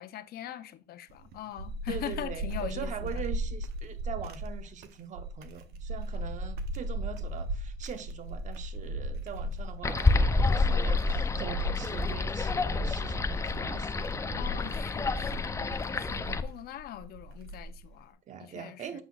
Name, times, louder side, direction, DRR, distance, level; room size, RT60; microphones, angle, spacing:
voice 1, 0.0-3.2 14.4-15.5 16.0-18.9, left 11 dB, 65° left, 0.6 m, -41 dB
sound 1, 1.1-17.9, right 1 dB, 70° right, 0.9 m, -37 dB
voice 2, 1.9-14.0 18.3-19.0, right 7 dB, 45° right, 0.9 m, -42 dB
sound 2, 9.8-16.4, left 3 dB, 15° left, 0.4 m, -28 dB
7.9 x 6.2 x 2.4 m
cardioid pair, 110°, 17 cm